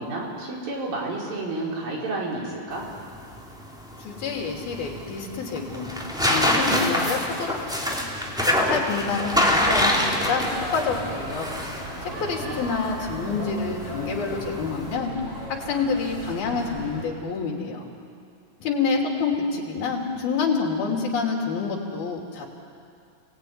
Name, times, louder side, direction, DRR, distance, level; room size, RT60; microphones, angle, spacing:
voice 1, 0.0-2.9 12.0-12.6, right 2 dB, 70° right, -3 dB, 6.2 m, -31 dB
sound 1, 2.7-14.9, left 1 dB, ahead, 2.7 m, -26 dB
voice 2, 4.0-8.0 8.5-11.5 12.0-15.1 15.5-17.9 18.6-22.5, left 5 dB, 75° left, 0 dB, 4.9 m, -28 dB
sound 2, 9.2-17.0, right 2 dB, 40° right, 7.2 m, -37 dB
30.0 x 19.0 x 9.7 m, 2.4 s
omnidirectional pair, 4.3 m